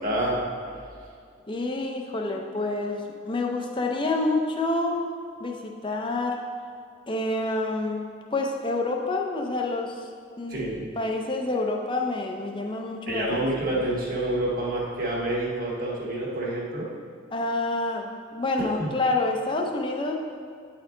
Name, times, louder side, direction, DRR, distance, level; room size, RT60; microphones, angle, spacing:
voice 1, 0.0-0.4 10.5-10.9 13.1-16.9 18.8-18.9, right 1 dB, 45° right, -4 dB, 1.3 m, -28 dB
voice 2, 1.5-5.1 5.4-6.4 7.1-10.0 10.4-13.8 17.3-20.2, left 2 dB, 25° left, 2 dB, 0.5 m, -28 dB
9.2 x 4.4 x 3.8 m, 2.3 s
head